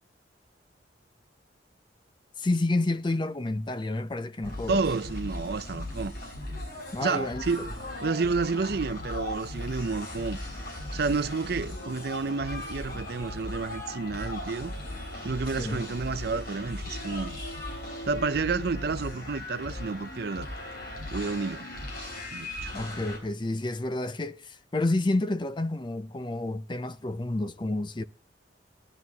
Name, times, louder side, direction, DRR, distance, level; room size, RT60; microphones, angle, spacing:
voice 1, 2.4-4.8 6.9-7.4 15.6-15.9 22.7-28.0, left 2 dB, 25° left, 0.6 m, -29 dB
sound 1, 4.4-23.2, left 1 dB, 55° left, 4.9 m, -37 dB
voice 2, 4.7-6.2 7.0-7.7 8.0-10.4 10.9-14.7 15.2-17.4 18.1-20.5 21.1-21.7 22.3-22.7, right 4 dB, 60° right, 0.6 m, -30 dB
19.5 x 11.0 x 2.9 m
head